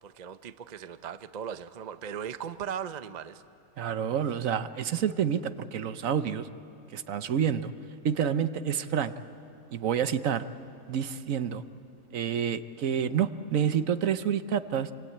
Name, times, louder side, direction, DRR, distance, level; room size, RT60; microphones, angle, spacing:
voice 1, 0.0-3.4, right 8 dB, 40° right, 12 dB, 0.6 m, -38 dB
voice 2, 3.8-6.5 6.9-7.7 8.0-9.1 9.7-10.4 10.9-11.6 12.1-14.9, right 8 dB, 70° right, 12 dB, 1.2 m, -28 dB
26.5 x 26.0 x 8.7 m, 2.6 s
omnidirectional pair, 1.5 m